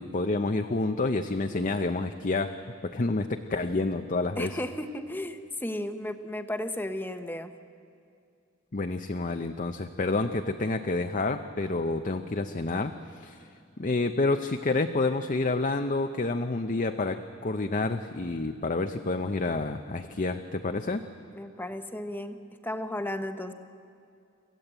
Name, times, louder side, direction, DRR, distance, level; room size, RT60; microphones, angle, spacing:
voice 1, 0.0-2.6 2.8-4.6 8.7-13.5 13.8-21.0, left 3 dB, 40° left, 7 dB, 0.7 m, -29 dB
voice 2, 4.4-7.5 21.3-23.5, left 1 dB, 10° left, 8 dB, 1.0 m, -34 dB
27.0 x 15.5 x 8.1 m, 2.4 s
head